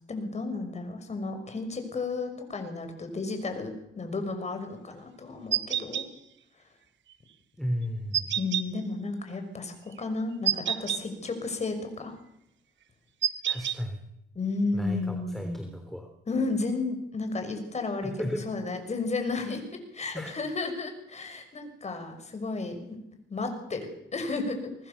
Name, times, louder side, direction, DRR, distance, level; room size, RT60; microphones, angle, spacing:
voice 1, 0.1-6.0 8.4-12.2 14.3-15.7 16.3-19.6 19.9-23.0 23.3-24.9, left 3 dB, 35° left, 6 dB, 6.2 m, -33 dB
sound 1, 5.5-6.0 8.1-8.6 10.4-11.0 13.2-13.8, right 10 dB, 70° right, 1.1 m, -27 dB
voice 2, 7.6-8.4 13.4-14.0 14.7-16.1 18.2-18.4 20.1-20.3, equal, ahead, 4 dB, 3.4 m, -34 dB
25.0 x 20.0 x 7.0 m, 0.80 s
cardioid pair, 90°, 20 cm